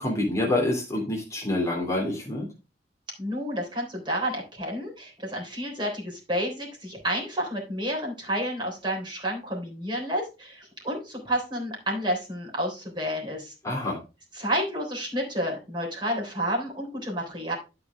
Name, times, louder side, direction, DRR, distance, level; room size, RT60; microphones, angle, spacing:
voice 1, 0.0-2.5 13.6-14.0, left 1 dB, 20° left, -3 dB, 2.8 m, -27 dB
voice 2, 3.2-13.5 14.3-17.5, equal, 25° right, -2 dB, 3.6 m, -30 dB
12.0 x 5.0 x 3.5 m, 0.30 s
head